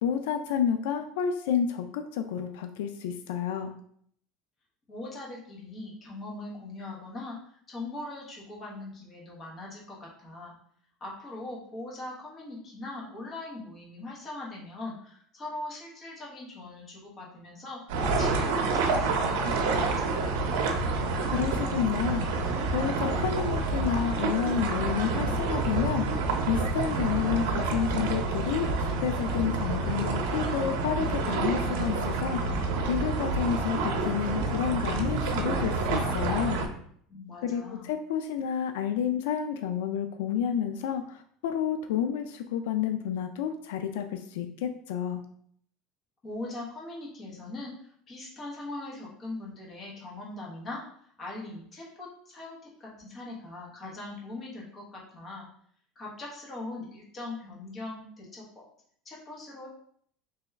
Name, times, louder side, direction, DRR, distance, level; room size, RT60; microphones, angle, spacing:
voice 1, 0.0-3.7 21.3-22.5 22.7-32.6 32.9-36.6 37.4-45.2, left 8 dB, 80° left, 7 dB, 0.3 m, -30 dB
voice 2, 4.9-7.4 7.7-10.5 11.0-20.8 37.1-37.9 46.2-50.8 51.2-55.4 55.9-58.6 59.0-59.7, left 2 dB, 20° left, -3 dB, 1.1 m, -41 dB
sound 1, 17.9-36.7, right 3 dB, 80° right, 0.6 m, -28 dB
3.3 x 3.0 x 3.4 m, 0.63 s
cardioid pair, 175°, 0 cm